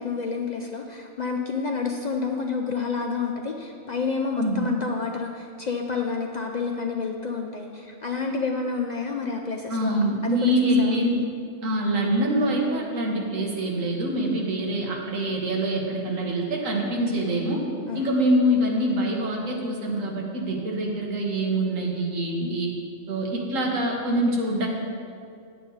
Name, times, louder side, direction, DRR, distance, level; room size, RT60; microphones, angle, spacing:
voice 1, 0.0-9.9 10.2-11.0 17.9-18.1 22.4-22.6, left 4 dB, 75° left, 2 dB, 0.4 m, -29 dB
voice 2, 9.7-11.2 11.6-17.6 17.9-22.7 23.1-24.7, equal, 70° right, -1 dB, 1.7 m, -25 dB
9.2 x 7.8 x 4.0 m, 2.4 s
omnidirectional pair, 1.4 m